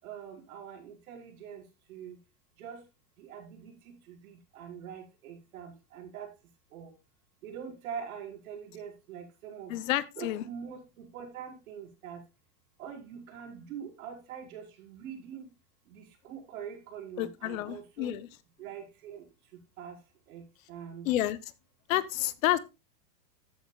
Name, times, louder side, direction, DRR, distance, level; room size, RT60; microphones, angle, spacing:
voice 1, 0.0-1.6 1.9-2.2 2.6-2.9 3.2-6.3 6.7-6.9 7.4-9.8 10.2-12.2 12.8-15.4 15.9-18.2 18.6-19.2 19.8-20.0 20.3-21.1, right 7 dB, 85° right, 5.2 m, -44 dB
voice 2, 9.7-10.4 17.2-18.3 21.0-21.4 21.9-22.6, left 14 dB, 70° left, 1.0 m, -29 dB
13.5 x 8.8 x 2.4 m
supercardioid pair, 165°, 42 cm